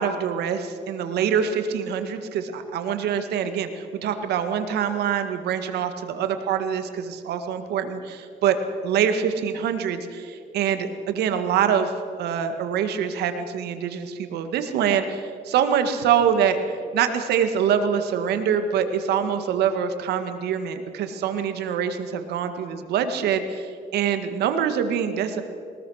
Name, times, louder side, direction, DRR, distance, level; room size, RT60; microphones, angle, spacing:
voice 1, 0.0-8.6 8.8-11.9 12.2-16.6 16.9-25.4, right 8 dB, 75° right, 8 dB, 1.9 m, -25 dB
22.5 x 20.5 x 6.5 m, 2.2 s
cardioid pair, 110°, 17 cm